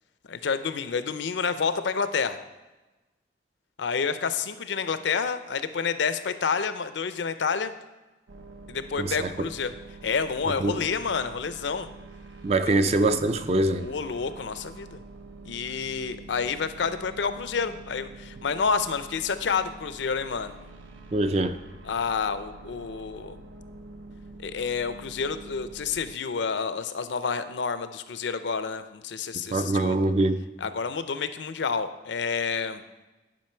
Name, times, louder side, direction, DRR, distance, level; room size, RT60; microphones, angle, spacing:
voice 1, 0.3-2.4 3.8-7.7 8.7-9.7 10.0-11.9 12.7-12.8 13.8-15.0 15.5-20.5 21.8-23.4 24.4-30.0 30.6-32.8, left 5 dB, 70° left, 11 dB, 0.5 m, -29 dB
sound 1, 8.3-26.2, right 3 dB, 85° right, 0.8 m, -46 dB
voice 2, 9.0-9.3 10.5-10.8 12.4-13.9 21.1-21.6 29.5-30.4, right 2 dB, 35° right, 10 dB, 0.4 m, -24 dB
10.5 x 5.5 x 4.4 m, 1.1 s
head